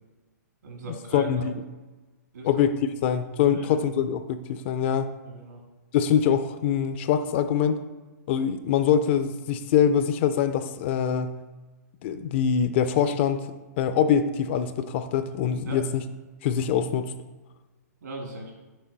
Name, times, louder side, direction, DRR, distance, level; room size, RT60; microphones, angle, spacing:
voice 1, 0.6-1.5 2.3-2.6 3.5-3.8 5.2-5.6 15.7-15.8 18.0-18.5, right 2 dB, 75° right, 0 dB, 2.0 m, -38 dB
voice 2, 1.1-1.5 2.4-2.7 3.0-5.1 5.9-7.8 8.3-11.4 12.0-13.5 13.8-16.0 16.4-17.1, left 8 dB, 40° left, 10 dB, 0.4 m, -24 dB
6.2 x 4.0 x 4.0 m, 1.2 s
hypercardioid pair, 140°, 9 cm